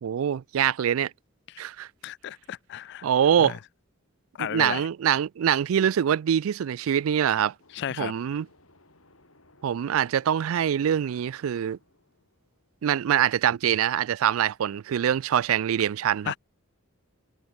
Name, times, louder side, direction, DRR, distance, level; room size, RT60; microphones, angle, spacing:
voice 1, 0.0-1.1 1.6-1.9 3.0-3.6 4.5-7.5 8.0-8.5 9.6-11.8 12.8-16.3, right 9 dB, 80° right, 0.3 m, -24 dB
voice 2, 2.0-3.1 3.4-3.6 4.4-4.9 7.7-8.1 16.3-16.4, left 9 dB, 55° left, 0.3 m, -33 dB
sound 1, 7.6-13.3, left 2 dB, 80° left, 7.7 m, -60 dB
head